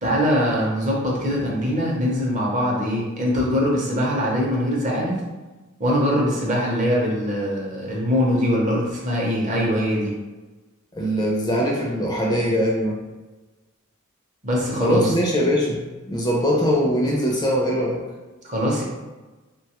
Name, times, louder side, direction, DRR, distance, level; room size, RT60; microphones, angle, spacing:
voice 1, 0.0-5.2 5.8-10.1 14.4-15.1 18.4-18.8, equal, 35° right, -3 dB, 0.6 m, -22 dB
voice 2, 10.9-13.0 14.8-15.8 16.1-18.0, equal, 20° left, -2 dB, 0.4 m, -21 dB
3.0 x 2.2 x 2.9 m, 1.2 s
head